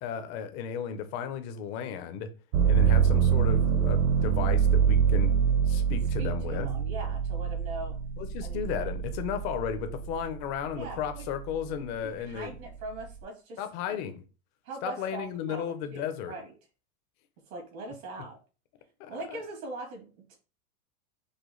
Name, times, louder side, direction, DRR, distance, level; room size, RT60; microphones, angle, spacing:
voice 1, 0.0-2.3 2.6-5.3 5.7-6.7 8.2-12.5 13.6-14.2 14.8-16.3 19.0-19.4, left 8 dB, 25° left, 0.4 m, -34 dB
sound 1, 2.5-10.3 10.8-11.6, right 7 dB, 55° right, 0.7 m, -25 dB
voice 2, 6.2-8.0 8.4-8.7 10.7-11.3 12.0-14.0 14.6-16.5 17.5-18.4 19.1-20.4, right 2 dB, 80° right, 2.2 m, -41 dB
5.0 x 2.1 x 3.7 m
supercardioid pair, 155°, 41 cm